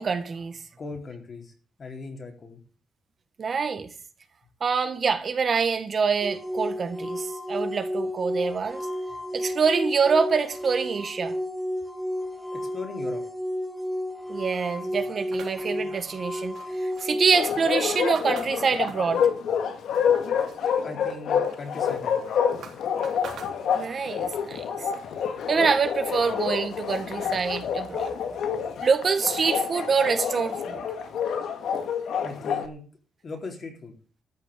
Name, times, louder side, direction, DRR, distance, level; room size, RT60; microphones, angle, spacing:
voice 1, 0.0-0.6 3.4-3.9 4.6-8.9 9.3-11.3 14.3-19.2 23.7-24.6 25.5-28.1 28.8-30.9, right 5 dB, 40° right, 1.7 m, -25 dB
voice 2, 0.8-1.5 1.8-2.6 12.7-13.2 20.8-22.3 32.2-32.8 33.2-33.9, left 3 dB, 40° left, 3.9 m, -38 dB
sound 1, 6.2-17.4, equal, 5° right, 1.3 m, -32 dB
sound 2, 15.3-19.2 19.6-20.6 21.0-24.0, right 7 dB, 70° right, 3.6 m, -46 dB
Bark, 17.3-32.7, left 7 dB, 80° left, 2.0 m, -28 dB
13.5 x 6.7 x 8.6 m
cardioid pair, 130°, 0 cm